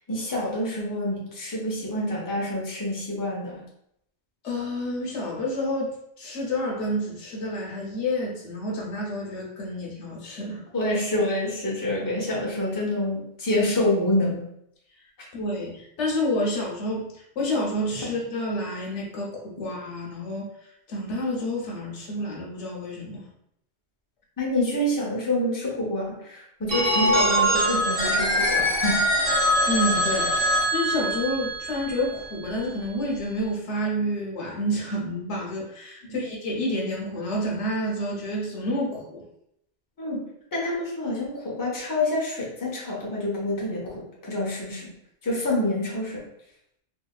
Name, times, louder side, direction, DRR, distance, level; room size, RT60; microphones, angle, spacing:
voice 1, 0.1-3.6 10.7-14.4 24.4-29.0 36.1-36.2 40.0-40.2 40.5-44.9 45.2-46.2, left 1 dB, 20° left, -4 dB, 0.7 m, -27 dB
voice 2, 4.4-10.6 15.3-23.3 29.7-39.2, left 1 dB, 85° left, -2 dB, 1.1 m, -29 dB
Telephone, 26.7-32.5, equal, 40° right, 0.6 m, -23 dB
3.3 x 2.7 x 2.3 m, 0.75 s
omnidirectional pair, 1.2 m